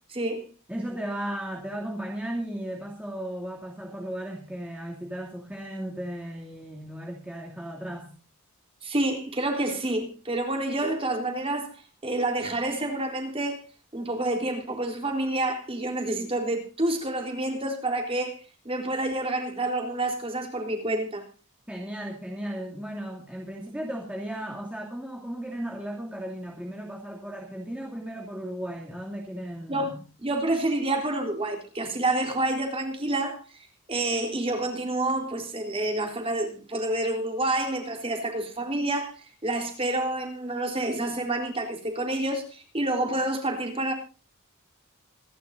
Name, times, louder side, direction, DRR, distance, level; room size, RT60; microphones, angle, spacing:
voice 1, 0.1-0.5 8.8-13.6 13.9-18.4 18.6-21.2 29.7-29.9 30.2-43.9, right 2 dB, 25° right, 3 dB, 3.8 m, -28 dB
voice 2, 0.7-8.1 21.7-29.9, right 1 dB, 5° right, -2 dB, 2.6 m, -35 dB
26.5 x 11.5 x 2.7 m, 0.34 s
head